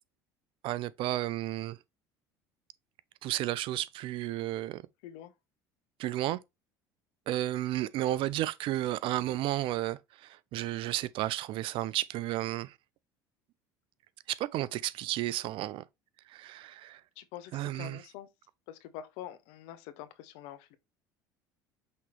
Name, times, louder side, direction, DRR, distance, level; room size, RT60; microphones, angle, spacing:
voice 1, 0.6-1.8 3.2-4.8 6.0-6.4 7.3-12.7 14.3-15.8 16.3-17.0 17.5-18.0, right 14 dB, 55° right, 0.4 m, -32 dB
voice 2, 17.2-18.3 18.7-20.8, left 11 dB, 70° left, 0.6 m, -45 dB
5.8 x 3.0 x 3.0 m
hypercardioid pair, 75°, 10 cm